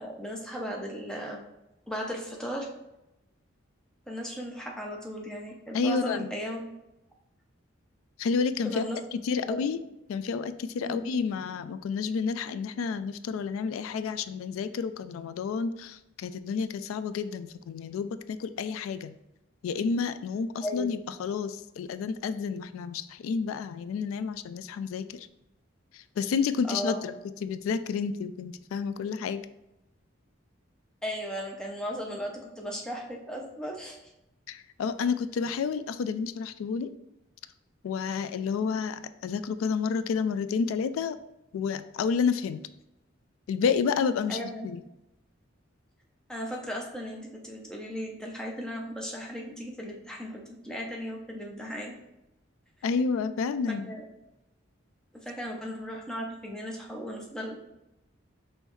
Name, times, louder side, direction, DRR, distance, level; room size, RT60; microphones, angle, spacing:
voice 1, 0.0-1.4 1.9-2.7 4.1-6.6 8.6-9.0 9.3-9.6 10.8-11.0 20.6-20.9 26.7-27.0 31.0-34.0 44.3-44.7 46.3-51.9 53.6-54.0 55.1-57.5, equal, 5° left, -1 dB, 0.6 m, -36 dB
voice 2, 5.7-6.3 8.2-9.8 10.1-19.2 19.6-25.3 25.9-27.1 27.4-29.4 34.5-36.9 37.8-41.2 41.5-42.6 43.5-44.8 52.8-53.9, left 5 dB, 90° left, 12 dB, 0.3 m, -30 dB
5.4 x 3.1 x 3.1 m, 0.91 s
head